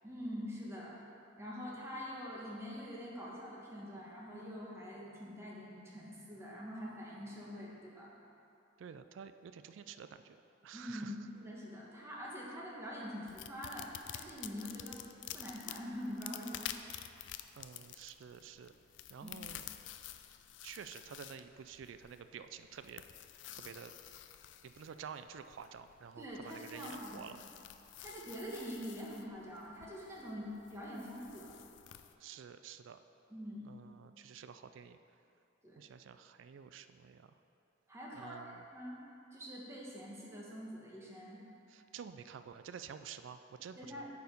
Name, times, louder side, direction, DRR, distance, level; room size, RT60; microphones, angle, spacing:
voice 1, 0.0-1.0 1.4-8.1 10.7-15.0 15.3-16.9 19.2-19.4 26.2-27.4 28.0-31.5 33.3-33.7 35.6-35.8 37.9-39.0 39.3-41.4 43.8-44.1, equal, 15° right, -5 dB, 1.4 m, -45 dB
voice 2, 8.8-10.4 10.6-11.1 17.6-18.7 19.1-19.6 20.6-23.0 23.5-23.9 24.6-27.4 32.2-33.0 33.7-35.0 35.8-37.3 38.1-38.6 41.7-44.1, right 7 dB, 80° right, 10 dB, 0.3 m, -50 dB
sound 1, 13.3-32.1, left 11 dB, 70° left, 0.4 m, -50 dB
9.3 x 4.7 x 5.3 m, 2.7 s
head